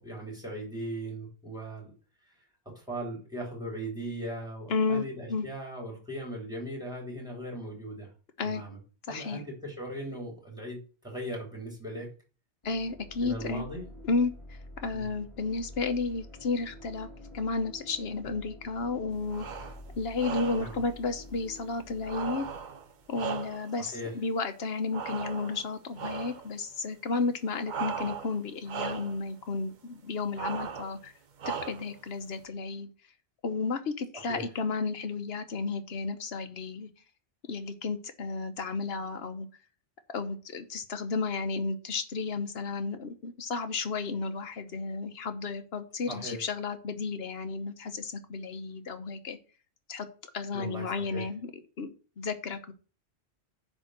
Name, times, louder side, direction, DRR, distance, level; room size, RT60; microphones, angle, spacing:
voice 1, 0.0-1.9 2.2-2.3 2.6-8.1 8.4-8.8 9.1-12.1 13.2-13.8 14.9-15.1 20.6-20.8 23.8-24.2 34.1-34.5 46.1-46.5 50.5-51.3, right 1 dB, 5° right, 3.3 m, -38 dB
voice 2, 4.7-5.5 8.4-8.6 9.1-9.4 12.6-13.6 14.0-14.3 14.8-17.1 17.3-19.5 20.0-22.5 23.1-31.1 31.7-32.9 33.4-36.9 37.5-39.5 40.1-49.4 49.9-50.1 50.3-51.5 51.8-52.7, left 4 dB, 65° left, 1.2 m, -32 dB
sound 1, 12.6-23.4, left 1 dB, 30° left, 1.7 m, -48 dB
sound 2, 19.3-19.8 20.2-20.8 22.0-23.8 24.9-25.7 26.0-26.5 27.6-28.4 28.6-29.2 30.3-31.0 31.4-32.0, right 7 dB, 50° right, 0.8 m, -37 dB
9.8 x 3.7 x 6.3 m
omnidirectional pair, 1.1 m